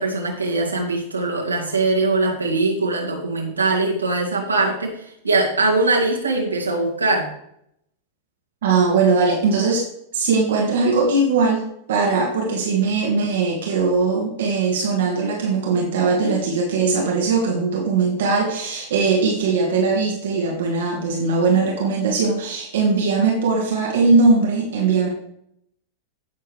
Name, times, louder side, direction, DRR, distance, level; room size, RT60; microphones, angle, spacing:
voice 1, 0.0-4.9 5.2-7.3, right 3 dB, 80° right, -1 dB, 2.3 m, -21 dB
voice 2, 8.6-9.9 10.1-11.6 11.9-25.1, right 4 dB, 60° right, 0 dB, 1.8 m, -20 dB
16.5 x 6.7 x 3.2 m, 0.72 s
figure-of-eight pair, 90°, 0 cm